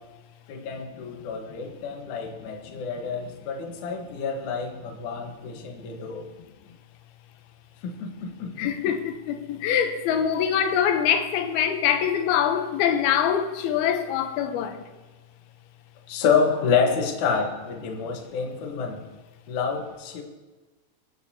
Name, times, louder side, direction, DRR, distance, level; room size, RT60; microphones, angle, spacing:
voice 1, 0.5-6.3 7.8-8.7 16.1-19.0 19.5-20.2, left 5 dB, 60° left, 2.3 m, -28 dB
voice 2, 8.6-14.8, left 8 dB, 75° left, 2.7 m, -24 dB
23.5 x 8.9 x 2.8 m
omnidirectional pair, 4.6 m